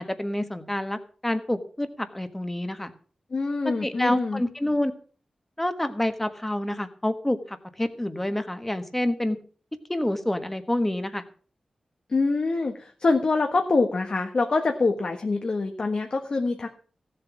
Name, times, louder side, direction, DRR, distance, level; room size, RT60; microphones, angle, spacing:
voice 1, 0.0-2.9 3.8-4.9 5.6-9.4 9.9-11.2, left 1 dB, 10° left, 9 dB, 1.4 m, -28 dB
voice 2, 3.3-4.4 12.1-16.7, left 3 dB, 50° left, 4 dB, 1.4 m, -25 dB
16.0 x 7.6 x 6.0 m, 0.41 s
wide cardioid pair, 120°, 2 cm